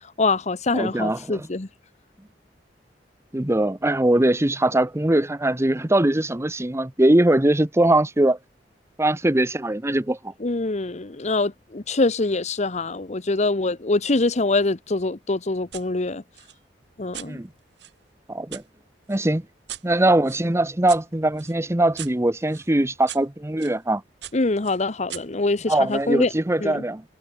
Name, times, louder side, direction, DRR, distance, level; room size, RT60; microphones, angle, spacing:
voice 1, 0.2-1.7 10.4-16.2 17.0-17.4 24.3-26.3 26.6-26.8, left 3 dB, 40° left, 1.0 m, -24 dB
voice 2, 0.7-1.5 3.3-8.4 9.0-10.3 17.2-17.5 18.3-18.6 19.1-19.5 19.8-24.0 25.7-27.0, right 1 dB, 15° right, 0.9 m, -21 dB
sound 1, 15.7-15.9 16.3-18.7 19.1-23.8 24.2-26.1, right 12 dB, 80° right, 2.0 m, -42 dB
head